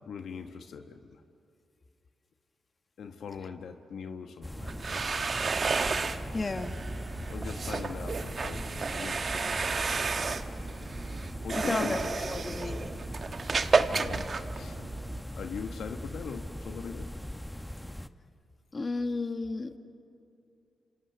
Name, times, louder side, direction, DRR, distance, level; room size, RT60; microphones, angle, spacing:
voice 1, 0.0-1.2 3.0-5.3 7.3-10.1 11.4-12.2 13.9-14.3 14.5-14.8 15.4-17.2 19.7-19.8, left 6 dB, 75° left, 6 dB, 1.1 m, -41 dB
sound 1, 4.4-18.1, left 1 dB, 10° left, 1.0 m, -41 dB
sound 2, 4.6-15.2, right 4 dB, 50° right, 1.2 m, -32 dB
voice 2, 6.3-6.7 11.5-13.0 18.7-19.8, left 3 dB, 40° left, 8 dB, 1.5 m, -33 dB
27.5 x 27.5 x 6.8 m, 2.6 s
supercardioid pair, 50°, 0 cm